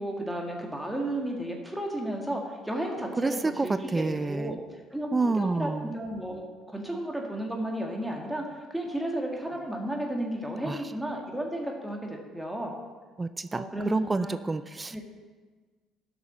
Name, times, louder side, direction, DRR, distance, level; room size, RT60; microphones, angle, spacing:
voice 1, 0.0-4.6 4.9-12.7 13.5-14.4 14.9-15.0, right 1 dB, 5° right, 0 dB, 2.0 m, -33 dB
voice 2, 3.2-3.7 3.9-4.6 5.1-5.9 10.6-10.8 13.2-15.0, right 3 dB, 25° right, 12 dB, 0.3 m, -28 dB
11.5 x 6.2 x 4.3 m, 1.4 s
hypercardioid pair, 60°, 0 cm